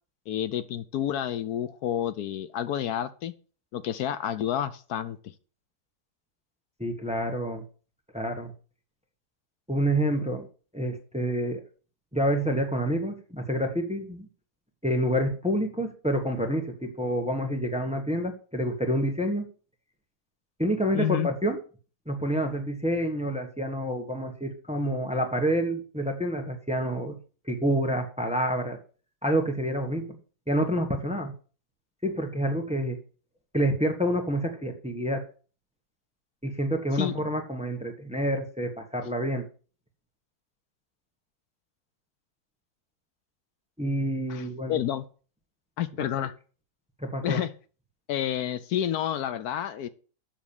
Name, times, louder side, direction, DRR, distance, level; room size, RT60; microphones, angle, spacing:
voice 1, 0.3-3.3 3.7-5.2 20.9-21.3 37.0-37.1 44.3-44.4 44.7-45.0 45.8-46.3 47.2-47.5 48.1-49.9, left 10 dB, 75° left, 13 dB, 1.2 m, -29 dB
voice 2, 6.8-7.6 8.1-8.5 9.7-10.5 10.7-11.6 12.1-14.3 14.8-19.4 20.6-21.6 22.1-27.2 27.5-28.8 29.2-30.2 30.5-31.3 32.0-33.0 33.5-35.2 36.4-39.4 43.8-44.8 46.0-46.3 47.0-47.4, equal, 5° right, 4 dB, 1.3 m, -28 dB
7.4 x 6.3 x 7.0 m, 0.39 s
omnidirectional pair, 1.7 m